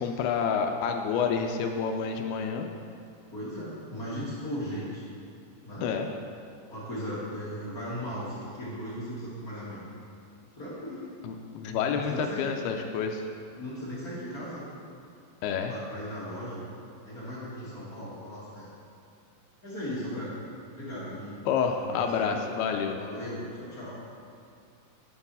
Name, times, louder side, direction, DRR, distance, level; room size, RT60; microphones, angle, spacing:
voice 1, 0.0-2.7 5.8-6.1 11.2-13.2 15.4-15.7 21.5-23.0, left 6 dB, 80° left, 4 dB, 2.3 m, -28 dB
voice 2, 3.3-5.0 5.6-5.9 6.7-9.9 10.6-11.1 11.7-12.4 13.6-14.7 15.7-16.6 17.0-18.7 19.6-20.3 20.6-21.4 21.7-22.4 22.9-23.9, equal, 45° left, -9 dB, 1.2 m, -37 dB
9.6 x 6.9 x 5.5 m, 2.5 s
omnidirectional pair, 4.9 m